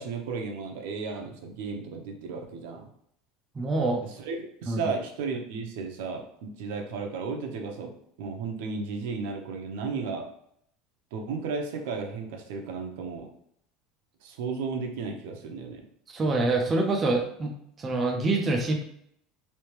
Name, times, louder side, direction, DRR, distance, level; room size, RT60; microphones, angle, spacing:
voice 1, 0.0-2.9 4.0-7.9 8.2-10.3 11.1-13.3 14.2-15.8, right 4 dB, 75° right, 3 dB, 0.7 m, -34 dB
voice 2, 3.6-4.1 4.7-4.8 16.1-17.5 17.8-18.7, right 2 dB, 15° right, 0 dB, 0.4 m, -25 dB
3.3 x 3.3 x 3.2 m, 0.70 s
cardioid pair, 180°, 0 cm